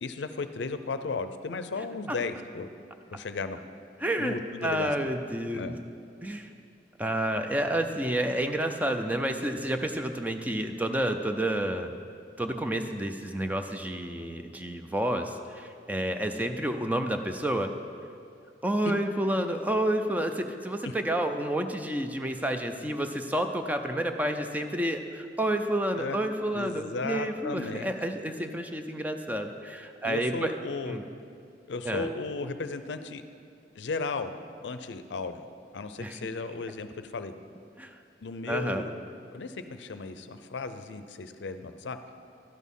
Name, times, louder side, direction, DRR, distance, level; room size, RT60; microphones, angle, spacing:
voice 1, 0.0-2.7 3.1-3.6 4.2-4.9 5.5-5.8 18.8-18.9 20.8-20.9 26.0-26.2 26.5-27.9 30.0-31.0 31.7-33.2 33.8-34.3 34.6-35.5 35.7-37.3 38.2-39.0 39.3-42.0, left 4 dB, 75° left, 10 dB, 0.5 m, -35 dB
voice 2, 4.0-4.4 4.6-5.7 6.2-6.5 7.0-11.9 12.4-17.7 18.6-30.5 30.9-31.0 31.8-32.1 36.0-36.2 37.8-38.0 38.5-38.9, right 1 dB, 10° right, 6 dB, 0.4 m, -30 dB
12.0 x 6.3 x 5.5 m, 2.4 s
head